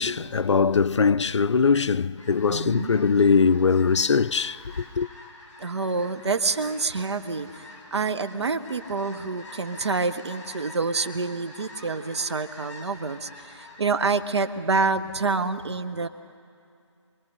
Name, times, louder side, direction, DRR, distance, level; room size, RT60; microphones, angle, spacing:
voice 1, 0.0-5.1, left 5 dB, 65° left, 0.5 m, -21 dB
sound 1, 2.1-14.2, left 2 dB, 30° left, 5.3 m, -46 dB
voice 2, 2.5-3.0 5.6-7.7 7.9-16.1, right 4 dB, 60° right, 1.0 m, -27 dB
24.5 x 21.5 x 5.5 m
figure-of-eight pair, 155°, 16 cm